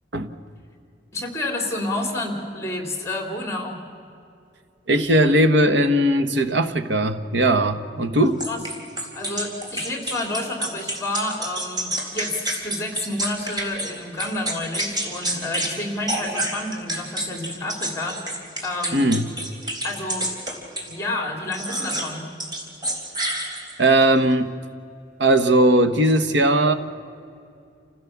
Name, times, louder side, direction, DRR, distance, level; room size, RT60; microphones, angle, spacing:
voice 1, 1.1-3.9 8.5-8.6 9.1-19.1 19.8-20.3 20.9-22.3, left 2 dB, 15° left, 3 dB, 3.5 m, -29 dB
voice 2, 4.9-8.4 18.9-19.3 23.8-24.5 25.2-26.7, right 1 dB, 90° right, 10 dB, 1.4 m, -18 dB
sound 1, 8.4-13.9 14.2-15.7 16.1-20.9 21.5-22.1 22.4-23.9, right 1 dB, 25° right, 3.8 m, -28 dB
28.5 x 16.0 x 7.3 m, 2.5 s
head